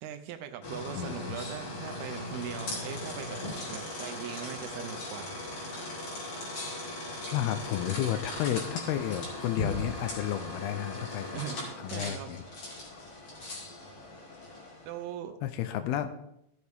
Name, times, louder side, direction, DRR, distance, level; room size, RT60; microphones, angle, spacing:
voice 1, 0.0-3.4 3.7-5.7 11.3-12.3 14.8-15.4, right 10 dB, 80° right, 7 dB, 2.5 m, -40 dB
sound 1, 0.6-15.0, left 2 dB, 40° left, 3.4 m, -39 dB
voice 2, 1.0-1.3 7.3-11.3 11.8-12.4 12.9-13.0 15.4-16.1, left 11 dB, 80° left, 10 dB, 2.5 m, -32 dB
14.5 x 7.9 x 3.5 m, 0.79 s
omnidirectional pair, 4.8 m